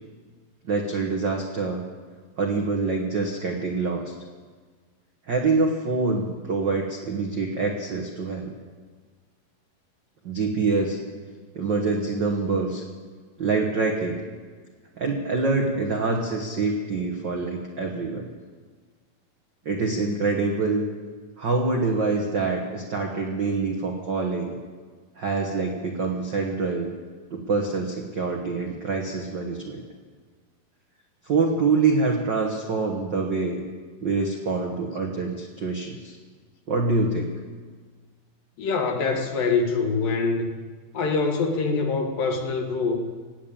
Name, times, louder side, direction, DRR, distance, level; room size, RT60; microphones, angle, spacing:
voice 1, 0.6-1.8 2.4-4.1 5.3-8.5 10.2-11.0 11.5-12.8 13.4-14.2 15.0-18.3 19.6-20.8 21.4-24.6 25.2-26.9 27.3-29.8 31.2-33.6 34.0-36.2 36.7-37.3, right 3 dB, 85° right, 1 dB, 1.0 m, -25 dB
voice 2, 38.6-40.5 40.9-43.0, left 4 dB, 70° left, 3 dB, 3.2 m, -24 dB
18.0 x 9.2 x 8.7 m, 1.5 s
omnidirectional pair, 4.2 m